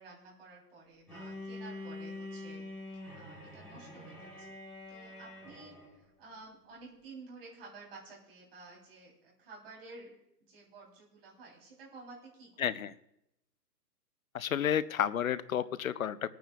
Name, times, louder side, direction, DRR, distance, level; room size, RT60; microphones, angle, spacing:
voice 1, 0.0-2.6 3.2-4.5 4.9-5.8 6.2-10.2 10.5-12.7, right 3 dB, 35° right, -4 dB, 3.7 m, -52 dB
Bowed string instrument, 1.1-5.9, left 2 dB, 5° left, 5.7 m, -45 dB
voice 2, 12.6-12.9 14.3-16.3, left 9 dB, 60° left, 16 dB, 0.6 m, -31 dB
27.5 x 9.2 x 2.4 m, 0.80 s
hypercardioid pair, 170°, 49 cm